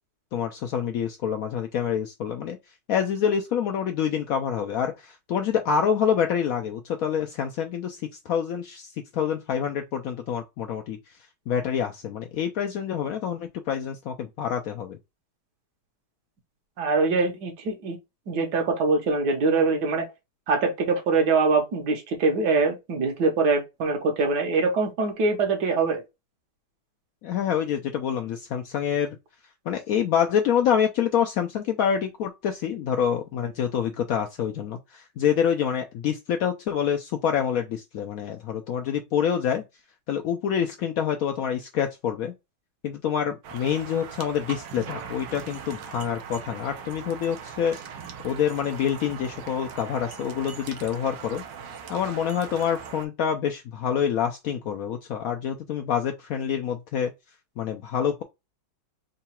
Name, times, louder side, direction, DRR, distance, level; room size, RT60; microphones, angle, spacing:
voice 1, 0.3-2.6 2.9-11.0 11.5-15.0 27.2-29.2 29.7-39.6 40.1-42.3 42.8-47.8 48.2-51.4 51.9-57.1 57.6-58.2, left 8 dB, 70° left, 0.8 m, -27 dB
voice 2, 16.8-18.0 18.3-20.1 20.5-26.0, right 4 dB, 70° right, 1.5 m, -23 dB
sound 1, 43.4-53.1, right 6 dB, 90° right, 1.4 m, -40 dB
3.8 x 2.3 x 4.3 m
omnidirectional pair, 1.9 m